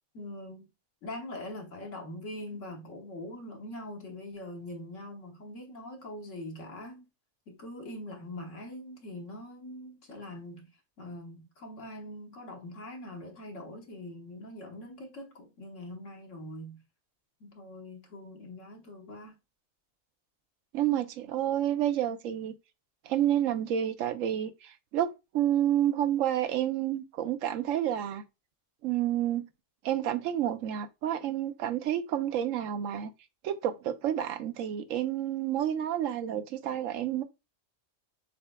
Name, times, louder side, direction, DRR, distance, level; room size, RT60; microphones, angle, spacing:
voice 1, 0.1-0.6 1.0-7.1 7.5-10.7 11.0-16.8 17.4-19.3, left 1 dB, 75° left, 1.5 m, -43 dB
voice 2, 20.7-22.5 23.0-28.2 28.8-29.4 29.8-33.1 33.4-37.2, right 11 dB, 85° right, 1.0 m, -29 dB
6.5 x 3.3 x 2.2 m
omnidirectional pair, 1.3 m